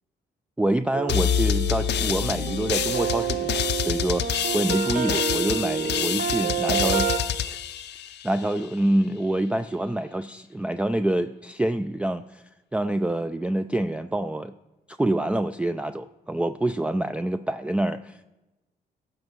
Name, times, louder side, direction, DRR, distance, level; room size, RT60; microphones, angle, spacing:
voice 1, 0.6-7.6 8.2-12.4 12.7-14.5 14.9-18.2, right 1 dB, 5° right, 9 dB, 0.4 m, -26 dB
sound 1, 0.9-7.2, right 8 dB, 60° right, 1.0 m, -29 dB
sound 2, 1.1-8.6, left 10 dB, 65° left, 0.6 m, -27 dB
15.0 x 7.8 x 3.1 m, 1.0 s
supercardioid pair, 65°, 19 cm